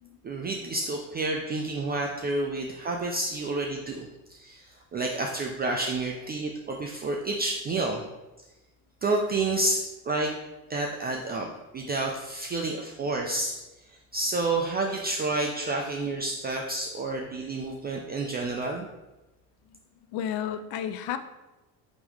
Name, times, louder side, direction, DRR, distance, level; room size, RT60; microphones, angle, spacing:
voice 1, 0.2-8.0 9.0-9.8 10.0-10.3 10.7-11.5 11.7-13.5 13.9-18.9, right 2 dB, 25° right, 0 dB, 0.4 m, -29 dB
voice 2, 20.1-21.2, left 9 dB, 55° left, 10 dB, 0.5 m, -32 dB
3.6 x 3.0 x 4.7 m, 1.1 s
supercardioid pair, 95°, 43 cm